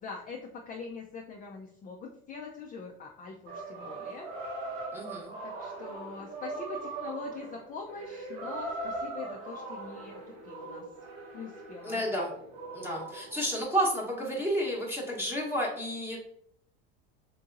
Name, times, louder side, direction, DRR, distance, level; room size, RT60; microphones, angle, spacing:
voice 1, 0.0-4.3 5.4-10.1 10.4-10.8 11.3-12.0, left 4 dB, 30° left, 0 dB, 0.4 m, -43 dB
sound 1, 3.5-13.6, right 2 dB, 75° right, 1.0 m, -40 dB
voice 2, 4.9-5.3 11.8-12.3 12.7-16.2, equal, 5° right, -3 dB, 0.9 m, -31 dB
3.6 x 2.7 x 2.5 m, 0.68 s
supercardioid pair, 95°, 30 cm